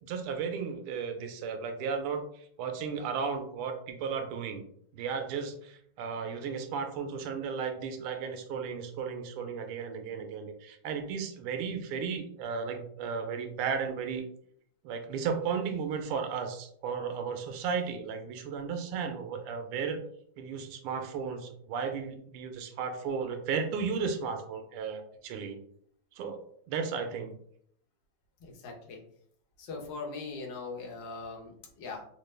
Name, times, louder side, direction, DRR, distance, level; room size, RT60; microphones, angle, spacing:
voice 1, 0.0-4.6 4.9-14.3 14.8-20.0 20.4-25.6 26.1-26.4 26.7-27.4, right 6 dB, 90° right, 6 dB, 1.5 m, -34 dB
voice 2, 28.4-29.0 29.6-32.1, left 4 dB, 65° left, -1 dB, 1.5 m, -41 dB
4.2 x 2.2 x 3.2 m, 0.66 s
omnidirectional pair, 2.4 m